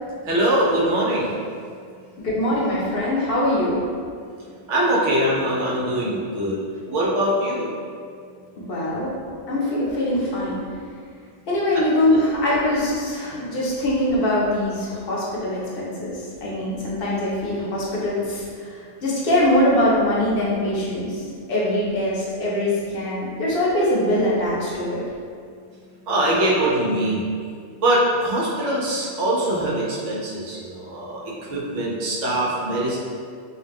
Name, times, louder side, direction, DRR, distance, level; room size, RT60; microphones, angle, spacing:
voice 1, 0.2-1.4 4.7-6.6 6.8-7.7 11.7-11.8 12.5-12.6 13.3-13.4 26.1-27.3 27.8-33.0, right 1 dB, 90° right, -5 dB, 1.0 m, -22 dB
voice 2, 2.2-3.8 8.7-9.1 9.5-10.6 11.5-21.2 21.5-25.0, left 1 dB, 60° left, -6 dB, 0.8 m, -22 dB
2.5 x 2.1 x 3.4 m, 2.2 s
omnidirectional pair, 1.2 m